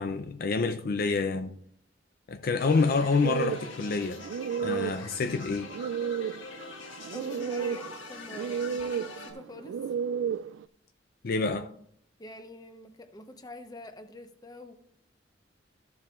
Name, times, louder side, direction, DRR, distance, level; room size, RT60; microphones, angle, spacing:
voice 1, 0.0-1.5 2.3-4.2 4.6-5.7 11.2-11.7, left 4 dB, 55° left, 0.5 m, -27 dB
sound 1, 2.6-9.3, left 3 dB, 90° left, 1.8 m, -44 dB
sound 2, 3.2-10.7, right 7 dB, 75° right, 0.3 m, -33 dB
voice 2, 7.1-9.9 12.2-14.7, left 2 dB, 20° left, 0.8 m, -45 dB
13.5 x 7.2 x 2.4 m
head